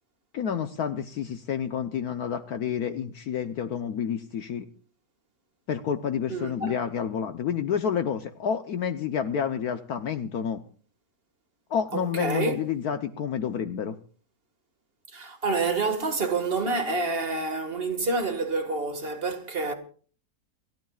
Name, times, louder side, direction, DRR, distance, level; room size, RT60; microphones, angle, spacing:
voice 1, 0.3-4.7 5.7-10.6 11.7-14.0, left 8 dB, 65° left, 1.3 m, -29 dB
voice 2, 6.3-6.7 11.9-12.6 15.1-19.7, right 3 dB, 35° right, 1.9 m, -28 dB
28.5 x 13.5 x 2.4 m
omnidirectional pair, 1.8 m